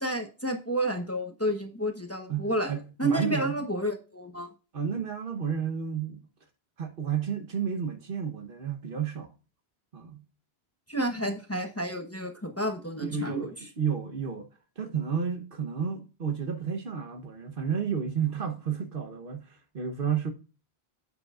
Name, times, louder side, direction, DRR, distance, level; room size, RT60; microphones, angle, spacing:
voice 1, 0.0-2.7 3.0-4.5 10.9-13.5, right 1 dB, 15° left, 0.9 m, -30 dB
voice 2, 2.3-3.7 4.7-6.3 6.8-9.3 9.9-10.2 13.0-14.5 14.8-20.3, right 7 dB, 60° right, 1.2 m, -31 dB
9.7 x 7.8 x 2.4 m
omnidirectional pair, 1.0 m